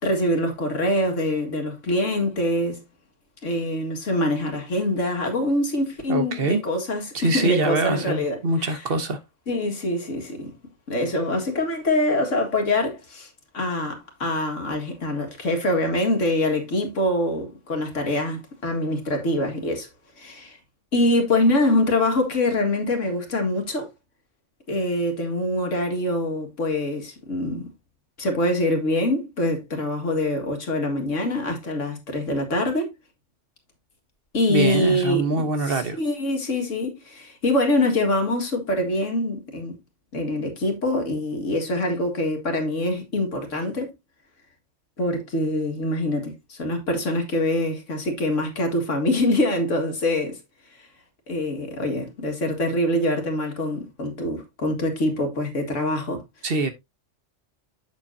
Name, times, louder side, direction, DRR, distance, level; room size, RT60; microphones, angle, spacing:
voice 1, 0.0-2.8 3.4-8.8 9.5-10.5 10.9-13.3 13.5-19.9 20.2-20.6 20.9-23.9 24.7-27.7 28.2-32.9 34.3-39.8 40.1-43.9 45.0-50.4 51.3-56.2, left 1 dB, 90° left, 2.3 m, -24 dB
voice 2, 6.1-6.6 7.1-9.2 34.5-36.0 56.4-56.7, right 3 dB, 50° right, 1.2 m, -24 dB
8.1 x 7.1 x 2.7 m
omnidirectional pair, 1.3 m